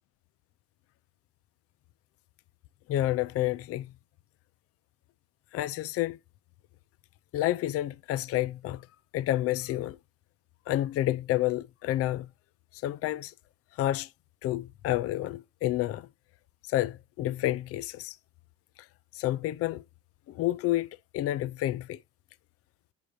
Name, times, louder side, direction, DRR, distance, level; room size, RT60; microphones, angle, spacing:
voice 1, 2.9-3.9 5.5-6.2 7.3-8.9 9.1-10.0 10.7-12.3 12.8-13.3 13.8-14.1 14.4-16.1 16.7-18.2 19.1-19.8 20.3-20.9 21.1-22.0, left 14 dB, 50° left, 0.5 m, -29 dB
14.0 x 5.0 x 2.8 m
cardioid pair, 130°, 30 cm